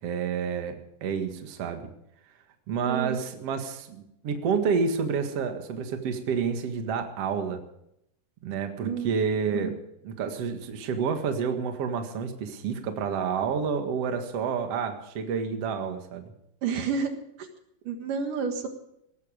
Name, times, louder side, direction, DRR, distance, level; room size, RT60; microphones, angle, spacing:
voice 1, 0.0-1.9 2.7-7.6 8.4-9.7 10.0-16.3, right 6 dB, 50° right, 5 dB, 2.5 m, -29 dB
voice 2, 2.8-3.2 8.8-9.1 9.5-9.7 16.6-17.1 17.4-17.5 17.9-18.7, right 6 dB, 75° right, 5 dB, 3.2 m, -30 dB
18.0 x 14.5 x 5.1 m, 0.77 s
omnidirectional pair, 3.9 m